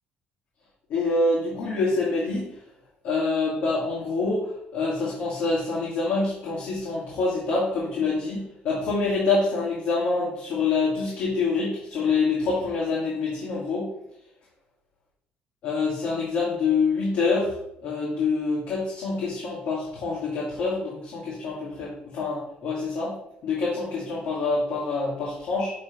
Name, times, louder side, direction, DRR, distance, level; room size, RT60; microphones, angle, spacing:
voice 1, 0.9-2.6 3.0-13.9 15.6-17.6 17.8-23.2 23.4-25.7, left 3 dB, 65° left, -6 dB, 2.1 m, -26 dB
7.1 x 3.3 x 5.1 m, 0.80 s
cardioid pair, 115°, 4 cm